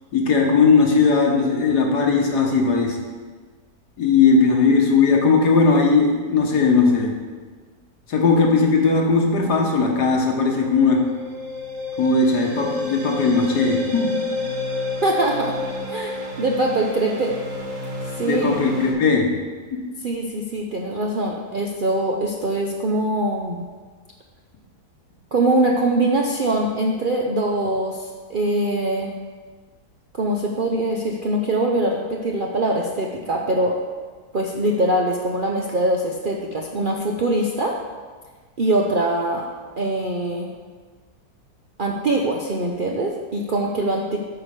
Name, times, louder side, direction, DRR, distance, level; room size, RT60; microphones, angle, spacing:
voice 1, 0.1-3.0 4.0-7.1 8.1-11.0 12.0-14.1 18.2-19.3 19.7-19.8, left 4 dB, 80° left, 0 dB, 1.8 m, -18 dB
sound 1, 10.5-18.9, left 3 dB, 90° right, 3.0 m, -30 dB
voice 2, 15.0-15.6 15.9-17.4 18.1-18.6 20.0-23.7 25.3-29.1 30.1-33.8 34.3-37.8 38.6-39.5 39.8-40.5 41.8-44.2, right 1 dB, 55° right, 0 dB, 0.5 m, -23 dB
8.8 x 4.5 x 6.5 m, 1.5 s
omnidirectional pair, 1.7 m